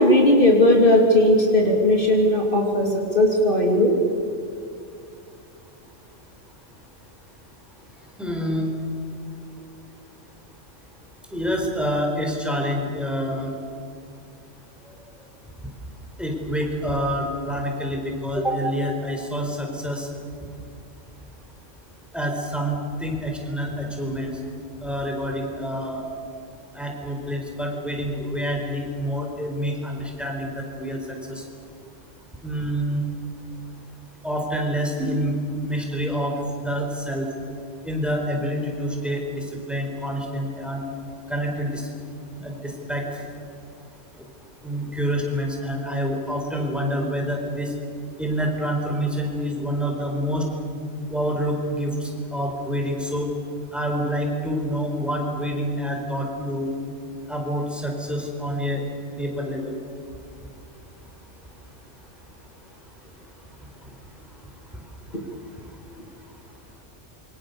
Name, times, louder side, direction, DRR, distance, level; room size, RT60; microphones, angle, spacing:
voice 1, 0.0-4.0, left 1 dB, 45° left, 0 dB, 3.0 m, -17 dB
voice 2, 8.2-8.7 11.3-13.5 16.2-20.1 22.1-24.3 24.8-26.0 26.7-31.4 32.4-33.0 34.2-35.4 35.6-37.3 37.8-40.8 41.3-41.9 42.4-43.2 44.6-47.7 48.2-50.5 51.1-53.3 53.7-56.7 57.3-58.8 59.2-59.7, equal, ahead, 1 dB, 4.5 m, -27 dB
27.5 x 24.5 x 7.0 m, 2.4 s
omnidirectional pair, 1.3 m